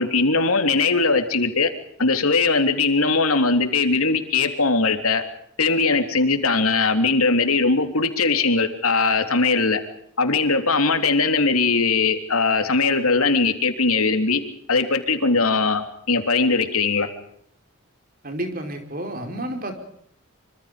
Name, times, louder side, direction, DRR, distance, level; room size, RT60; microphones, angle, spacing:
voice 1, 0.0-1.7 2.0-5.2 5.6-9.8 10.2-14.4 14.7-17.1, left 4 dB, 80° left, 7 dB, 3.4 m, -20 dB
voice 2, 18.2-19.7, right 1 dB, 40° right, 5 dB, 4.8 m, -30 dB
26.0 x 26.0 x 5.2 m, 0.67 s
head